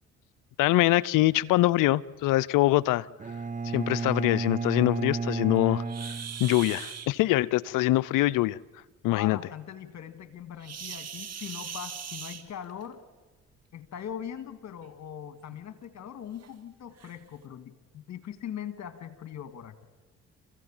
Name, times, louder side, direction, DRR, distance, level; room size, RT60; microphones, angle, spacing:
voice 1, 0.6-3.1 3.6-8.6 9.0-9.4, left 17 dB, 70° left, 0.7 m, -24 dB
Bowed string instrument, 3.2-7.0, right 4 dB, 25° right, 0.9 m, -33 dB
sound 1, 5.9-7.1 10.6-12.9 14.1-14.3 14.8-14.9 15.5-15.6 16.4-16.5 17.0-17.2, right 8 dB, 50° right, 2.2 m, -40 dB
voice 2, 9.1-13.0 13.7-19.9, left 9 dB, 55° left, 2.1 m, -41 dB
28.0 x 15.5 x 8.9 m
supercardioid pair, 60°, 33 cm